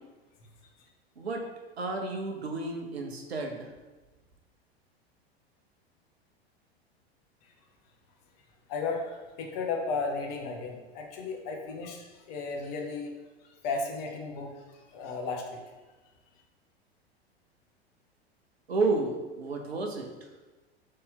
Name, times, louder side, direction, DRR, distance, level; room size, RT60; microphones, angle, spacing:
voice 1, 1.8-3.7 18.7-20.1, right 3 dB, 75° right, 3 dB, 0.8 m, -31 dB
voice 2, 8.7-13.1 13.4-15.6, left 4 dB, 40° left, 1 dB, 0.8 m, -34 dB
4.1 x 3.3 x 3.7 m, 1.2 s
figure-of-eight pair, 90°, 32 cm